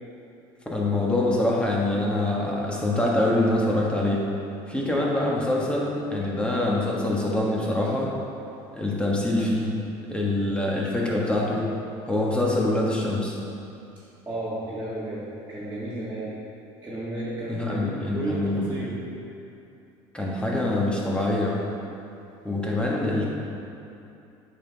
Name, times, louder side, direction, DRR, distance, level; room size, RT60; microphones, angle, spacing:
voice 1, 0.7-4.2 4.7-8.1 8.7-9.8 10.1-11.7 12.1-13.4 17.5-18.7 20.1-21.6 22.4-23.2, left 1 dB, 10° left, -4 dB, 1.4 m, -25 dB
voice 2, 14.2-16.4 16.8-19.0, right 1 dB, 15° right, -11 dB, 1.7 m, -32 dB
8.5 x 5.9 x 3.5 m, 2.7 s
cardioid pair, 110°, 12 cm